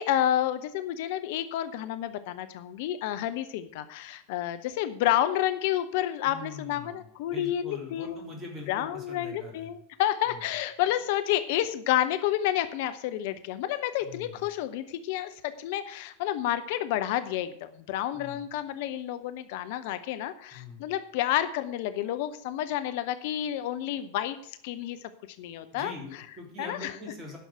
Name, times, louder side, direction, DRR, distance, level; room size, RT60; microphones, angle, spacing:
voice 1, 0.0-8.3 8.7-25.0 25.4-25.9 26.6-27.0, left 12 dB, 50° left, 11 dB, 0.6 m, -30 dB
voice 2, 6.2-7.0 7.3-9.7 10.3-10.4 14.0-14.4 18.1-18.4 20.5-20.8 25.7-27.4, left 3 dB, 20° right, 0 dB, 3.8 m, -43 dB
10.5 x 6.3 x 7.9 m, 0.67 s
figure-of-eight pair, 90°, 0 cm